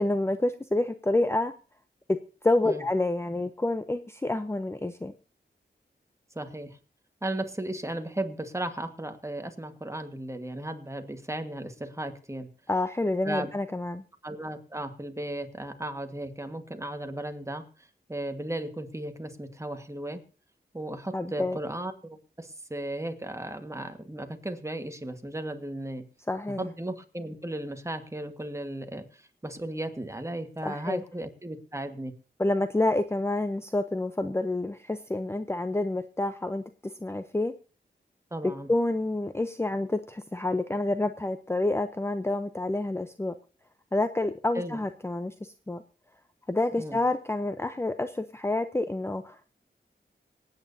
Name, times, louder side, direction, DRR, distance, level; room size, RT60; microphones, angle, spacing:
voice 1, 0.0-1.5 2.4-5.1 12.7-14.0 21.1-21.6 26.3-26.7 30.6-31.0 32.4-36.6 37.0-37.5 38.7-43.3 43.9-45.8 46.5-49.4, left 2 dB, 15° left, 10 dB, 0.6 m, -28 dB
voice 2, 6.3-6.8 7.2-12.5 13.2-13.5 14.2-17.7 18.1-20.2 20.7-26.0 26.6-29.0 29.4-32.1 38.3-38.7 44.5-44.8 46.8-47.0, right 1 dB, 15° right, 7 dB, 1.5 m, -35 dB
26.0 x 9.0 x 2.7 m, 0.36 s
wide cardioid pair, 80°, 18 cm